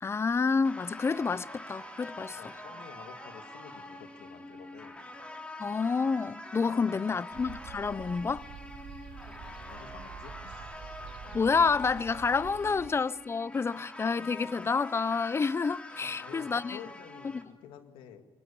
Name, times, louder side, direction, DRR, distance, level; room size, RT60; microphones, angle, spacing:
voice 1, 0.0-2.4 5.6-8.5 11.3-16.8, left 5 dB, 30° left, 0.6 m, -29 dB
sound 1, 0.6-17.4, left 1 dB, 10° left, 3.6 m, -45 dB
voice 2, 2.3-5.0 6.7-7.2 9.7-10.9 12.6-12.7 16.0-18.3, left 8 dB, 90° left, 1.9 m, -50 dB
sound 2, 7.3-12.9, right 9 dB, 65° right, 1.0 m, -47 dB
22.0 x 19.5 x 6.9 m
cardioid pair, 80°, 9 cm